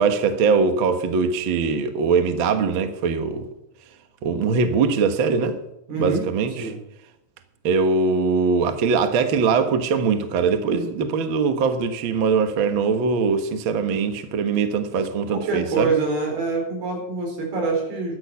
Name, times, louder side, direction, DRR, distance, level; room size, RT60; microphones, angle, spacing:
voice 1, 0.0-3.5 4.2-5.6 6.0-6.7 7.6-15.9, right 5 dB, 60° right, 1.3 m, -21 dB
voice 2, 5.9-6.3 6.6-6.8 14.9-15.0 15.3-18.2, right 4 dB, 85° right, 6.0 m, -25 dB
13.5 x 11.5 x 5.7 m
omnidirectional pair, 4.2 m